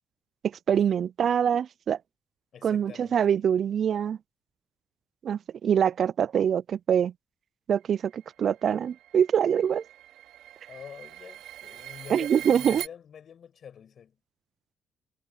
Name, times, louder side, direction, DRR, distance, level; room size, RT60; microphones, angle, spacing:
voice 1, 0.4-2.0 2.6-4.2 5.2-7.1 7.7-9.8 12.1-12.8, right 8 dB, 60° right, 0.4 m, -24 dB
voice 2, 2.5-3.4 10.7-14.2, left 8 dB, 55° left, 7.1 m, -47 dB
sound 1, 8.1-12.9, right 13 dB, 90° right, 4.4 m, -43 dB
cardioid pair, 90°, 0 cm